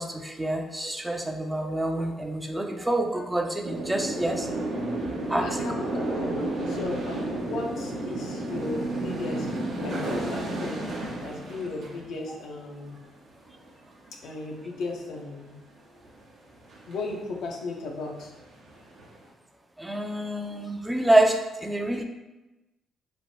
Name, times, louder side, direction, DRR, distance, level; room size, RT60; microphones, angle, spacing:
voice 1, 0.0-4.5 5.3-5.5 19.8-22.0, right 1 dB, 15° right, 4 dB, 0.4 m, -26 dB
sound 1, 3.6-13.1 13.5-13.7 14.1-14.3 14.6-15.3 16.0-16.2 16.5-17.1 17.6-17.7 17.8-19.2, right 2 dB, 70° right, 0.8 m, -32 dB
voice 2, 5.3-10.8 11.2-13.0 14.2-15.6 16.9-18.3, left 3 dB, 70° left, 0 dB, 0.5 m, -36 dB
3.0 x 2.1 x 2.9 m, 1.0 s
supercardioid pair, 55°, 0 cm